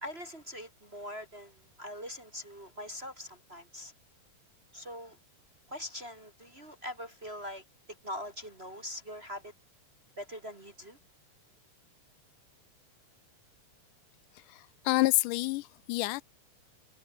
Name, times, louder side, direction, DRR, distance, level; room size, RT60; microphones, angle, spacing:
voice 1, 0.0-3.9 4.7-5.2 5.7-7.6 8.0-9.5 10.2-11.0, left 1 dB, 25° right, 1.6 m, -42 dB
voice 2, 14.4-16.2, left 20 dB, 80° left, 2.0 m, -29 dB
omnidirectional pair, 3.7 m